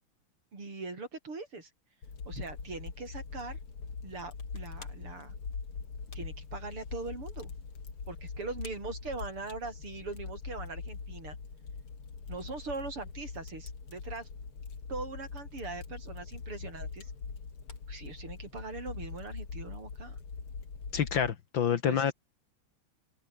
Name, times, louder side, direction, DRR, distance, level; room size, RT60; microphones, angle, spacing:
voice 1, 0.5-1.7 2.3-3.6 4.0-5.3 6.1-7.5 8.1-11.4 12.3-14.3 14.9-17.1 17.9-20.2 21.7-22.1, right 3 dB, 85° right, 6.6 m, -41 dB
Fire, 2.0-21.3, left 5 dB, 80° left, 4.4 m, -42 dB
voice 2, 20.9-22.1, left 8 dB, 65° left, 2.0 m, -28 dB
open air
omnidirectional pair, 2.4 m